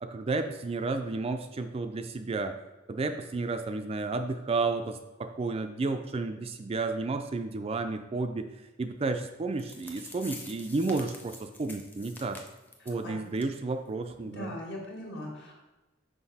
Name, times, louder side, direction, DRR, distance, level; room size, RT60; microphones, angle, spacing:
voice 1, 0.0-2.5 2.9-8.5 8.8-12.4 12.9-14.5, right 3 dB, 30° right, 7 dB, 0.4 m, -32 dB
sound 1, 9.3-9.4 9.6-13.0 13.4-13.5 13.8-13.9 14.4-14.5, left 2 dB, 10° left, 0.7 m, -46 dB
voice 2, 12.8-13.2 14.2-15.5, equal, 55° left, -1 dB, 1.7 m, -40 dB
5.8 x 5.3 x 4.1 m, 1.1 s
head